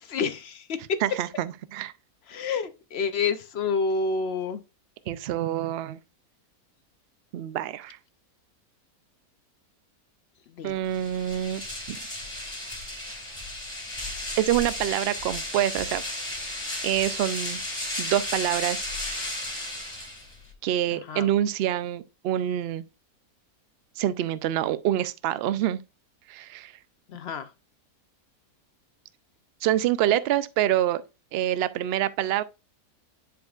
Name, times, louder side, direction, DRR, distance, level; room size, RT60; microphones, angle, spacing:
voice 1, 0.0-0.7 2.3-4.6 10.6-10.8 20.9-21.3 27.1-27.5, left 4 dB, 60° left, 0.7 m, -29 dB
voice 2, 1.0-1.9 5.1-6.0 7.3-8.0 10.6-11.6 11.9-12.0 14.4-16.0 16.8-17.6 18.0-18.9 20.6-22.8 24.0-25.8 26.3-26.7 29.6-31.0 31.3-32.4, right 12 dB, 75° right, 0.5 m, -26 dB
sound 1, 10.8-20.5, left 1 dB, 20° left, 1.9 m, -34 dB
10.0 x 4.9 x 2.4 m
omnidirectional pair, 1.6 m